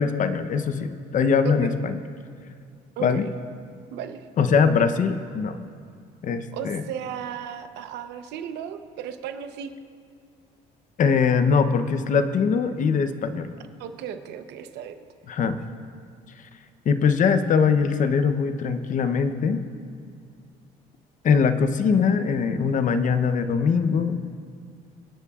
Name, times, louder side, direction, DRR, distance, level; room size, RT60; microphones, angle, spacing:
voice 1, 0.0-2.0 3.0-3.3 4.4-5.6 6.2-6.8 11.0-13.5 15.3-15.6 16.8-19.6 21.2-24.3, left 6 dB, 50° left, 10 dB, 0.8 m, -22 dB
voice 2, 1.4-1.8 3.0-3.3 3.9-4.3 6.5-9.7 13.8-14.9, right 8 dB, 85° right, 8 dB, 0.9 m, -35 dB
27.5 x 9.7 x 2.4 m, 2.3 s
cardioid pair, 110°, 17 cm